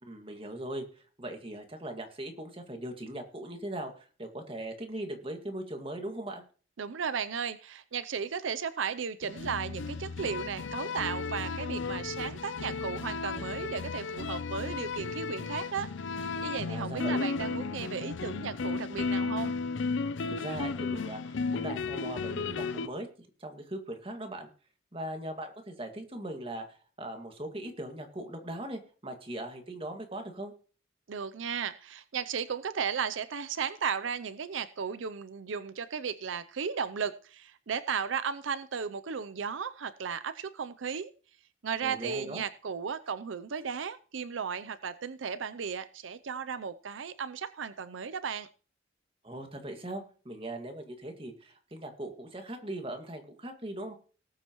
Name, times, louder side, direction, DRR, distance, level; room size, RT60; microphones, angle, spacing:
voice 1, 0.0-6.4 16.7-17.2 20.3-24.5 24.9-30.5 41.8-42.4 49.2-53.9, right 1 dB, 30° right, 4 dB, 2.0 m, -40 dB
voice 2, 6.8-15.9 16.1-19.6 31.1-41.1 41.6-48.5, right 6 dB, 90° right, 14 dB, 0.6 m, -35 dB
sound 1, 9.2-22.9, left 4 dB, 75° left, 0.6 m, -34 dB
19.0 x 8.6 x 3.1 m, 0.40 s
head